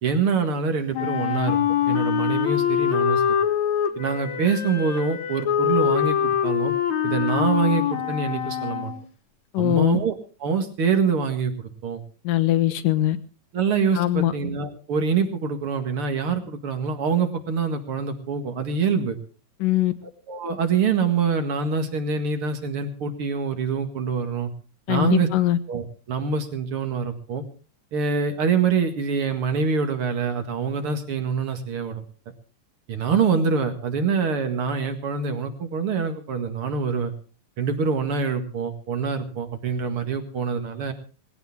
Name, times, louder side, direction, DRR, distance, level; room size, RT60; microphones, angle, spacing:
voice 1, 0.0-1.6 1.9-3.2 4.0-6.7 7.0-8.9 9.6-10.1 10.4-12.0 13.5-19.2 20.3-24.5 24.9-25.3 25.7-27.4 27.9-32.0 32.9-37.1 37.6-40.9, right 5 dB, 45° right, 7 dB, 2.5 m, -25 dB
Wind instrument woodwind instrument, 0.9-9.0, left 9 dB, 65° left, 2.7 m, -24 dB
voice 2, 9.5-10.0 12.2-13.2 13.9-14.3 19.6-19.9 24.9-25.6, left 14 dB, 85° left, 11 dB, 2.7 m, -21 dB
20.0 x 16.0 x 3.6 m, 0.36 s
omnidirectional pair, 3.7 m